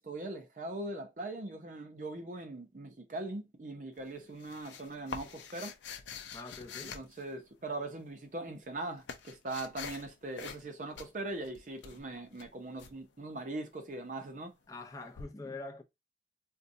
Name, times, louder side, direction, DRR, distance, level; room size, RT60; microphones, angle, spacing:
voice 1, 0.0-5.7 6.9-14.5, right 2 dB, 45° right, 0.5 m, -41 dB
sound 1, 4.0-7.8 8.5-10.1 10.4-10.7 10.9-12.9 15.2-15.3, left 6 dB, 85° left, 0.5 m, -45 dB
voice 2, 6.3-7.0 14.7-15.8, left 3 dB, 20° left, 0.5 m, -44 dB
4.0 x 2.2 x 2.5 m
head